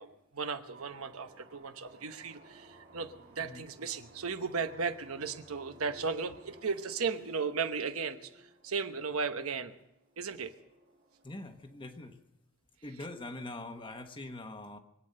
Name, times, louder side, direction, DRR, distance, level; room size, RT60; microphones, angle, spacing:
voice 1, 0.0-8.3 8.6-9.7 10.2-10.5, right 5 dB, 70° right, 8 dB, 1.0 m, -36 dB
sound 1, 0.7-12.2, right 2 dB, 45° right, 1.9 m, -58 dB
voice 2, 11.2-12.2 12.8-14.8, left 2 dB, 25° left, 6 dB, 1.2 m, -43 dB
23.5 x 8.8 x 6.6 m, 0.87 s
head